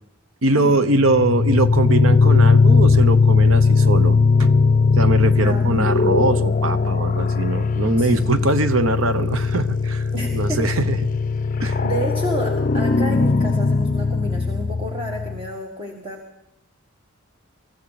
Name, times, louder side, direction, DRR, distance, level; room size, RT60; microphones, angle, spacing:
voice 1, 0.4-4.6 4.9-10.0 10.3-11.0 11.6-11.8, right 2 dB, 75° right, 11 dB, 1.0 m, -22 dB
sound 1, 0.9-15.5, left 4 dB, 40° left, 0.5 m, -18 dB
voice 2, 5.4-6.0 8.0-8.3 10.1-10.6 11.8-16.2, right 1 dB, 25° right, 1 dB, 1.9 m, -30 dB
24.0 x 14.0 x 4.2 m, 0.95 s
head